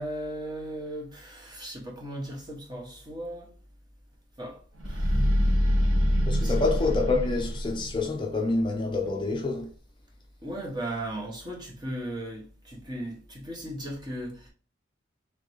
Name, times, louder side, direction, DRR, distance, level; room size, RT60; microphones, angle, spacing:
voice 1, 0.0-3.5 4.4-4.6 4.8-5.2 6.4-6.7 10.4-14.5, right 1 dB, 20° right, 1.1 m, -37 dB
sound 1, 4.8-8.1, equal, 85° right, 1.3 m, -25 dB
voice 2, 6.3-9.7, left 3 dB, 25° left, 0.5 m, -27 dB
3.7 x 3.3 x 3.1 m
head